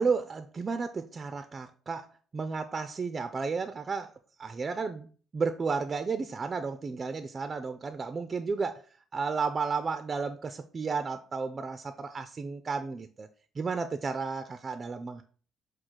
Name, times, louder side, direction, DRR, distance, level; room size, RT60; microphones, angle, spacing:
voice 1, 0.0-2.1 2.3-4.1 4.4-5.1 5.3-8.8 9.1-13.3 13.6-15.2, right 4 dB, 40° right, 0.3 m, -32 dB
4.6 x 2.3 x 3.8 m
supercardioid pair, 60°, 0 cm